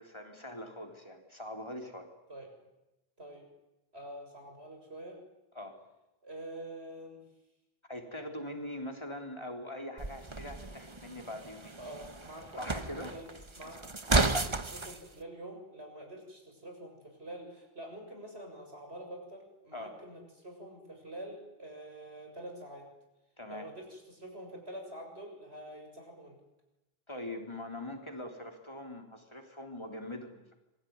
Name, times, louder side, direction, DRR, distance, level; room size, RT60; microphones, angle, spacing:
voice 1, 0.0-2.1 5.6-5.8 7.9-11.8 12.6-13.1 19.7-20.0 23.4-23.7 27.1-30.6, left 1 dB, 25° left, 3 dB, 3.7 m, -42 dB
voice 2, 3.9-5.2 6.2-7.2 11.8-12.8 13.1-13.3 13.6-22.9 23.5-26.4, right 1 dB, 75° right, 3 dB, 7.3 m, -46 dB
sound 1, 10.0-15.0, right 2 dB, 25° right, 1.3 m, -33 dB
27.0 x 22.0 x 9.6 m, 0.97 s
omnidirectional pair, 1.1 m